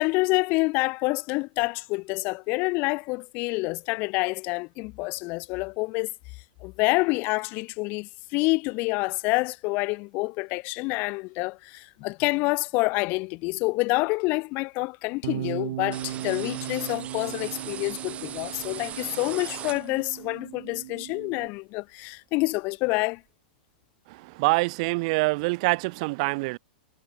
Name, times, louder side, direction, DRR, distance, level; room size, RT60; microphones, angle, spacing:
voice 1, 0.0-6.1 6.6-23.2, left 26 dB, 40° left, 0.3 m, -27 dB
Bass guitar, 15.2-21.5, right 14 dB, 70° right, 1.3 m, -37 dB
sound 1, 15.9-20.3, right 10 dB, 25° right, 1.8 m, -39 dB
voice 2, 24.4-26.6, right 26 dB, 50° right, 0.4 m, -25 dB
hypercardioid pair, 135°, 5 cm